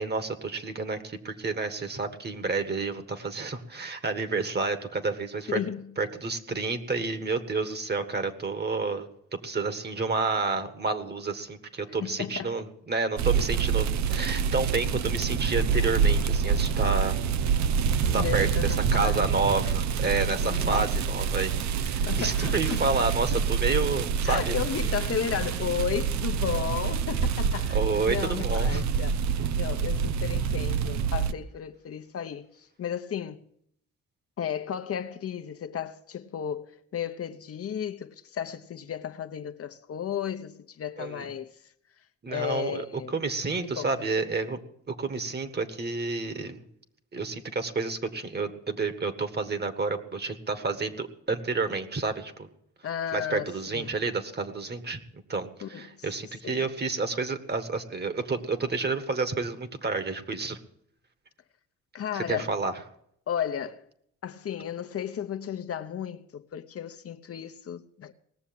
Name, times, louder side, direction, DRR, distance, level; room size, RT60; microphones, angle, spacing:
voice 1, 0.0-5.6 6.0-17.2 18.1-18.5 18.9-24.5 27.7-28.8 41.0-41.3 42.2-44.6 44.9-46.6 47.1-52.5 53.1-60.6 62.1-62.7, right 3 dB, 35° right, 1.7 m, -30 dB
voice 2, 5.5-5.9 12.0-12.7 18.0-19.3 20.4-20.9 22.1-22.8 24.2-29.2 29.5-33.4 34.4-41.7 42.3-43.2 43.6-43.9 52.8-53.9 55.6-56.1 56.4-56.6 61.9-62.5 63.3-63.9 64.2-68.1, left 9 dB, 50° left, 0.9 m, -34 dB
sound 1, 13.2-31.3, right 6 dB, 65° right, 0.7 m, -26 dB
18.5 x 7.1 x 8.8 m
cardioid pair, 90°, 30 cm